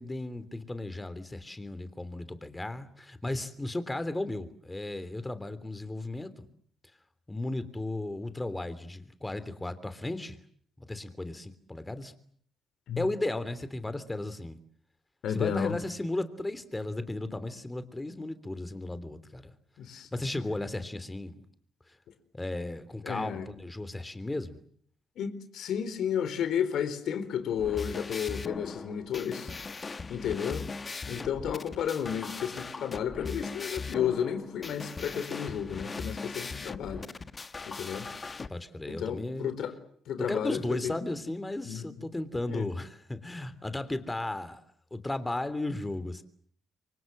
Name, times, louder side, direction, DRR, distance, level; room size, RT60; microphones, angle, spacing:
voice 1, 0.0-6.5 7.3-10.4 10.8-12.1 13.0-14.6 15.3-19.5 19.9-21.3 22.3-24.6 38.5-39.5 40.2-44.6 44.9-46.2, left 2 dB, 15° left, 3.2 m, -35 dB
voice 2, 15.2-15.7 19.8-20.1 23.0-23.5 25.2-29.5 30.1-30.7 31.1-37.1 37.7-38.1 38.9-39.7 40.1-41.0 41.7-41.8 42.5-42.7, left 8 dB, 75° left, 4.1 m, -32 dB
sound 1, 27.5-38.5, left 4 dB, 30° left, 1.4 m, -39 dB
28.5 x 24.5 x 7.9 m
cardioid pair, 90°, 0 cm